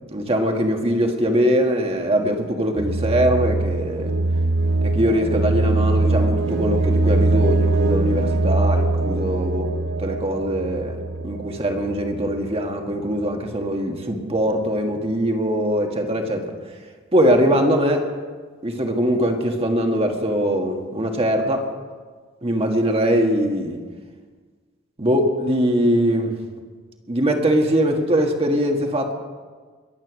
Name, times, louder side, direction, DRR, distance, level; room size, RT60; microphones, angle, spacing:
voice 1, 0.0-4.1 4.8-9.7 10.0-11.0 11.2-16.5 17.1-18.0 18.6-21.6 22.4-23.8 25.0-26.4 27.1-29.1, equal, 30° right, 3 dB, 1.6 m, -21 dB
sound 1, 2.8-12.6, right 2 dB, 60° right, 0.6 m, -22 dB
22.5 x 8.9 x 6.2 m, 1.5 s
head